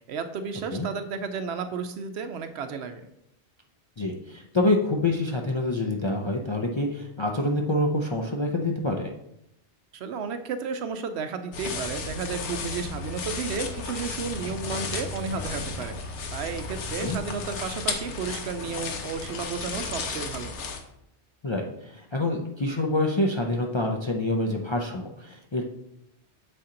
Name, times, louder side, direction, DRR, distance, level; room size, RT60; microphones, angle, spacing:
voice 1, 0.0-3.1 9.9-20.6, right 5 dB, 70° right, 9 dB, 0.8 m, -33 dB
voice 2, 4.0-9.1 17.0-17.2 21.4-25.6, left 2 dB, 40° left, 1 dB, 0.4 m, -26 dB
sound 1, 11.5-20.8, left 4 dB, 80° left, 1.1 m, -34 dB
6.9 x 4.3 x 3.8 m, 0.80 s
omnidirectional pair, 1.2 m